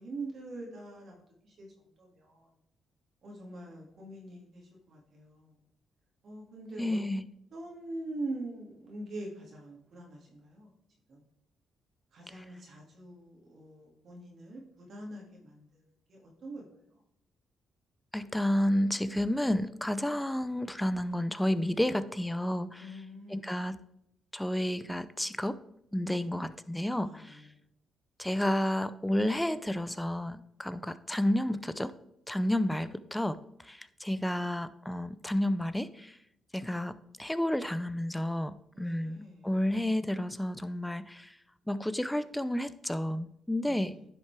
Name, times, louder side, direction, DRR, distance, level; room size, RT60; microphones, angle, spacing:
voice 1, 0.0-1.7 2.0-2.5 3.2-5.6 6.2-7.0 7.5-10.7 11.1-11.2 12.1-15.8 16.1-16.6 22.8-23.6 26.0-26.5 26.9-27.5 38.7-39.5 43.6-44.1, right 2 dB, 55° right, -1 dB, 2.0 m, -44 dB
voice 2, 6.8-7.3 12.3-12.4 18.1-22.8 23.3-23.8 24.3-25.6 25.9-27.4 28.2-31.9 32.3-33.4 33.6-36.2 36.5-41.3 41.7-43.9, left 1 dB, 5° left, 14 dB, 0.5 m, -31 dB
10.5 x 5.7 x 3.3 m, 0.78 s
cardioid pair, 90°, 0 cm